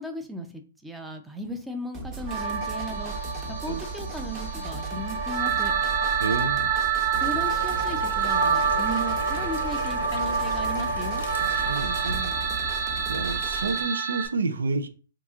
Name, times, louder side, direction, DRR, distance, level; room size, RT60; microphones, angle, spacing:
voice 1, 0.0-3.1 3.6-5.7 7.2-11.2, equal, 5° right, 0.5 m, -36 dB
sound 1, 1.9-13.8, right 4 dB, 25° right, 0.9 m, -37 dB
sound 2, 2.3-14.3, right 6 dB, 55° right, 0.9 m, -27 dB
voice 2, 6.2-6.7 11.5-12.8 13.1-14.9, right 4 dB, 90° right, 0.5 m, -30 dB
sound 3, 7.1-12.2, left 3 dB, 80° left, 0.7 m, -38 dB
2.9 x 2.4 x 3.6 m
hypercardioid pair, 140°, 0 cm